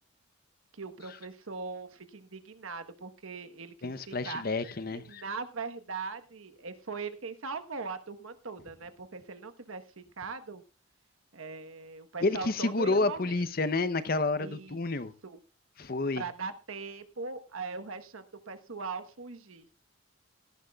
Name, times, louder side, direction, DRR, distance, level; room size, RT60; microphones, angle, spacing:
voice 1, 0.7-4.4 4.9-10.6 11.3-13.4 14.4-14.8 15.2-15.4 16.2-19.7, right 4 dB, 80° right, 9 dB, 1.2 m, -40 dB
voice 2, 3.8-5.2 12.2-15.1 15.8-16.2, left 3 dB, 45° left, 13 dB, 0.7 m, -29 dB
17.5 x 13.0 x 2.4 m, 0.30 s
head